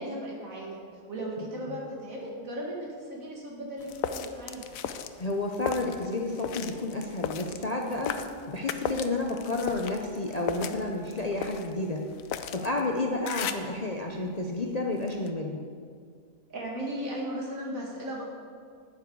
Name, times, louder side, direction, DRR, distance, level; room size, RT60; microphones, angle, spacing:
voice 1, 0.0-4.6 16.5-18.2, right 1 dB, 65° right, -2 dB, 2.5 m, -36 dB
sound 1, 3.8-13.8 14.3-15.3, left 8 dB, 75° left, 1.0 m, -37 dB
voice 2, 5.2-8.1 8.5-12.1 12.5-15.6, left 2 dB, 35° left, 0 dB, 0.7 m, -31 dB
11.5 x 8.8 x 4.7 m, 2.1 s
omnidirectional pair, 1.5 m